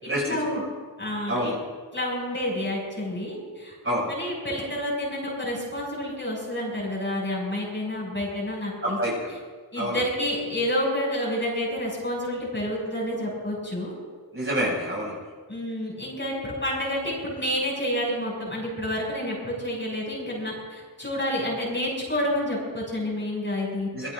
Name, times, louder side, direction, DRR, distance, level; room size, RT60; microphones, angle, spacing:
voice 1, 0.0-0.6 1.0-1.5 1.9-3.8 4.1-9.0 9.7-13.9 15.5-23.9, left 1 dB, 25° left, -3 dB, 6.7 m, -29 dB
voice 2, 8.8-9.3 9.8-10.0 14.3-15.1 23.9-24.1, equal, 30° right, -6 dB, 6.8 m, -27 dB
25.0 x 20.5 x 2.7 m, 1.5 s
wide cardioid pair, 130°, 42 cm